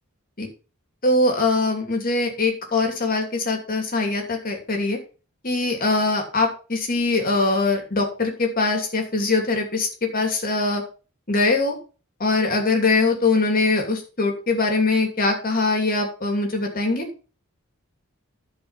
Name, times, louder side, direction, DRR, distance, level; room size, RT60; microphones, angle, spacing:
voice 1, 1.0-5.0 5.4-10.8 11.3-11.8 12.2-17.1, left 3 dB, 45° left, 3 dB, 2.7 m, -22 dB
11.5 x 5.0 x 5.7 m, 0.36 s
head